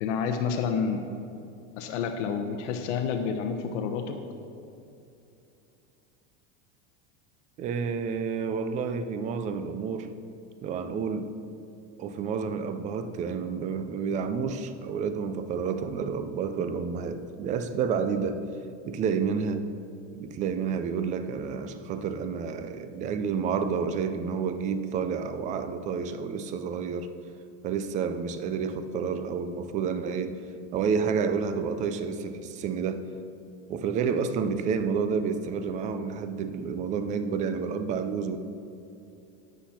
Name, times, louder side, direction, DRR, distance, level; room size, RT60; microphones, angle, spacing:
voice 1, 0.0-1.1 1.8-4.2, left 6 dB, 80° left, 4 dB, 0.9 m, -29 dB
voice 2, 7.6-10.1 10.6-11.3 12.0-18.4 18.9-19.7 20.1-27.1 27.6-30.4 30.7-33.0 33.7-38.4, right 6 dB, 20° right, 10 dB, 0.4 m, -30 dB
11.5 x 8.2 x 4.3 m, 2.7 s
supercardioid pair, 160°, 35 cm